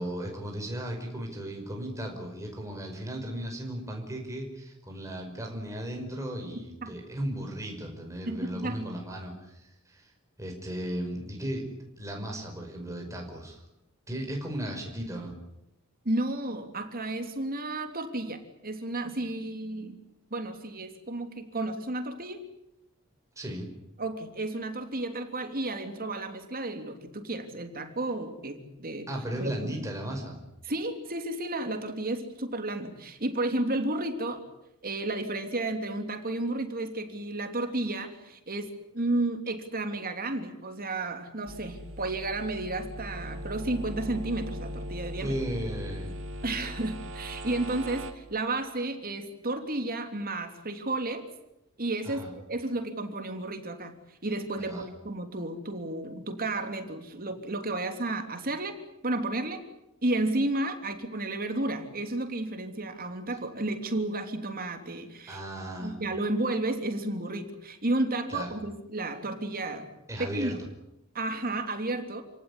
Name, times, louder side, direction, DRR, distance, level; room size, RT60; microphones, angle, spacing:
voice 1, 0.0-10.1 10.4-11.7 12.0-13.6 14.1-15.3 23.4-23.7 29.1-30.4 45.2-46.2 52.0-52.3 54.6-54.9 65.3-66.0 68.3-68.5 70.1-70.6, right 1 dB, 15° right, 1 dB, 5.5 m, -36 dB
voice 2, 8.3-8.8 16.0-20.0 20.3-22.4 24.0-29.1 29.4-29.5 30.6-34.4 34.8-38.7 38.9-45.3 46.4-51.2 51.8-54.0 54.2-58.7 59.0-59.6 60.0-65.4 65.8-69.9 70.2-70.6 71.1-72.2, right 2 dB, 45° right, 6 dB, 3.1 m, -32 dB
sound 1, 41.5-48.1, equal, 60° right, 2.7 m, -39 dB
29.0 x 18.0 x 9.8 m, 0.86 s
head